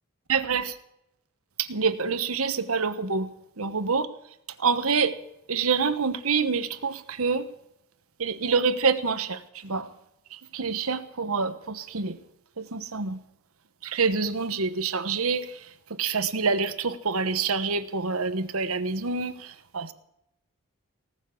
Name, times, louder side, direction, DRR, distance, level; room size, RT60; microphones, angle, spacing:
voice 1, 0.3-0.8 1.6-3.3 3.6-4.1 4.6-5.2 5.5-7.5 8.2-9.9 10.3-12.2 12.6-13.2 13.8-19.9, right 5 dB, 85° right, 11 dB, 1.1 m, -27 dB
18.5 x 7.4 x 8.3 m, 0.83 s
head